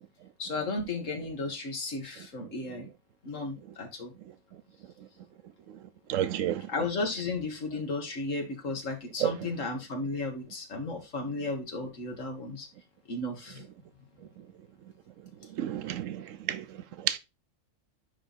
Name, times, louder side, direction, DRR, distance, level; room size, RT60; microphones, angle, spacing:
voice 1, 0.4-2.9 3.2-4.1 6.7-12.7 13.1-13.6, left 3 dB, 90° left, 2.1 m, -34 dB
voice 2, 6.1-6.6 9.2-9.3 15.6-16.6 17.0-17.2, right 11 dB, 85° right, 1.1 m, -30 dB
9.9 x 3.4 x 4.1 m
omnidirectional pair, 1.3 m